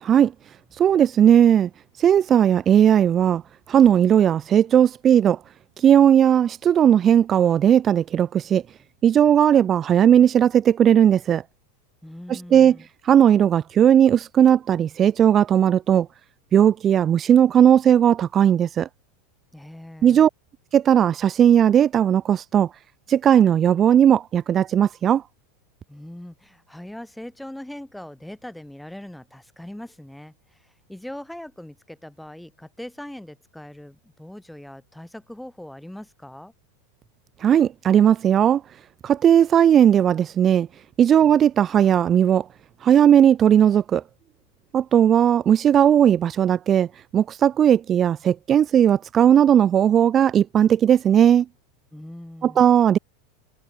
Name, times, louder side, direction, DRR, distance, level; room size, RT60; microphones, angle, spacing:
voice 1, 0.0-0.3 0.7-1.7 2.0-3.4 3.7-5.4 5.8-8.6 9.0-11.4 12.3-12.8 13.0-16.1 16.5-18.9 20.0-20.3 20.7-22.7 23.1-25.2 37.4-38.6 39.0-40.7 41.0-42.5 42.8-44.0 44.7-46.9 47.1-51.5 52.4-53.0, right 9 dB, 30° right, 0.6 m, -17 dB
voice 2, 12.0-12.9 19.5-20.3 25.9-36.5 51.9-52.7, left 1 dB, 5° left, 3.7 m, -40 dB
hypercardioid pair, 105°, 0 cm